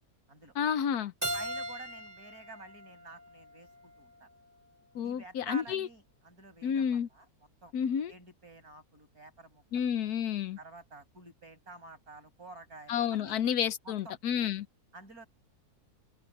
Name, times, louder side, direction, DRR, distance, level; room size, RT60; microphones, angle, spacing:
voice 1, 0.6-1.1 4.9-5.9 6.6-7.1 7.7-8.1 9.7-10.6 12.9-14.7, left 8 dB, 80° left, 1.3 m, -30 dB
Keyboard (musical), 1.2-4.0, right 1 dB, 10° right, 3.1 m, -39 dB
voice 2, 1.3-4.3 5.0-7.3 7.6-7.7 8.1-9.9 10.6-13.4 13.8-14.1 14.9-15.3, right 2 dB, 65° right, 8.5 m, -50 dB
omnidirectional pair, 1.7 m